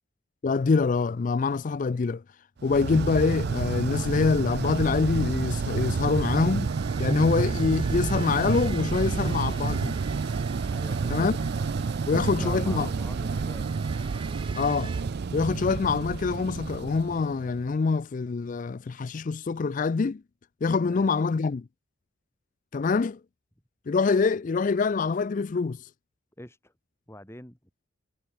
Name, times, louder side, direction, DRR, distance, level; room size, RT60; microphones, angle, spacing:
voice 1, 0.4-2.2 2.6-6.7 7.0-10.0 11.1-11.4 12.1-12.9 14.5-14.9 15.3-20.2 20.6-21.6 22.7-23.2 23.9-25.8, left 4 dB, 40° left, 0.4 m, -25 dB
sound 1, 2.7-17.7, right 4 dB, 55° right, 0.4 m, -29 dB
sound 2, 6.5-15.0, right 4 dB, 25° right, 3.5 m, -46 dB
voice 2, 10.7-11.3 12.0-13.8 20.8-21.1 26.4-26.7 27.1-27.6, left 1 dB, 10° left, 3.0 m, -45 dB
head